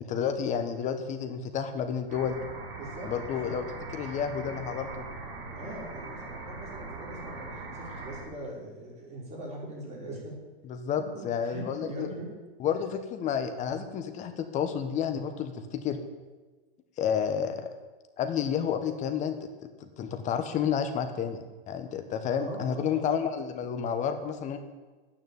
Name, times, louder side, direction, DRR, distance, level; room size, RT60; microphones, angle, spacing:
voice 1, 0.1-2.4 3.0-3.6 3.9-5.1 10.6-12.1 12.6-16.0 17.0-17.7 18.2-19.5 19.8-24.6, left 7 dB, 25° left, 7 dB, 1.5 m, -30 dB
sound 1, 2.1-8.2, right 3 dB, 45° right, 6.2 m, -41 dB
voice 2, 2.7-3.6 4.1-4.3 5.5-10.3 10.9-12.3 22.4-23.0, right 1 dB, 20° right, -3 dB, 5.5 m, -41 dB
11.5 x 9.9 x 8.9 m, 1.3 s
supercardioid pair, 150°, 30 cm